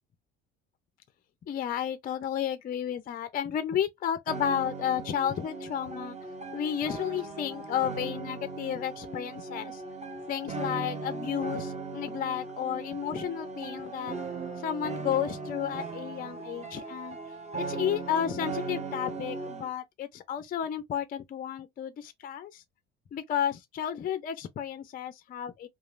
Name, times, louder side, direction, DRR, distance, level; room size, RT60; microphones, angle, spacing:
voice 1, 1.5-6.2 6.5-9.8 10.3-14.2 14.6-17.2 17.6-22.6 23.1-25.7, left 9 dB, 30° left, 0.4 m, -32 dB
sound 1, 4.3-19.7, right 4 dB, 20° right, 0.9 m, -38 dB
2.9 x 2.3 x 2.3 m
hypercardioid pair, 70°, 31 cm